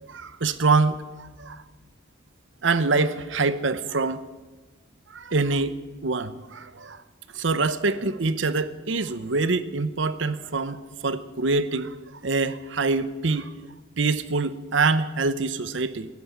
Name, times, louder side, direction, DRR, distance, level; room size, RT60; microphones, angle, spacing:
voice 1, 0.1-1.6 2.6-4.2 5.1-5.8 6.0-7.0 7.3-11.9 12.2-13.5 14.0-16.1, right 3 dB, 75° right, 14 dB, 0.9 m, -25 dB
15.5 x 11.0 x 8.4 m, 1.3 s
head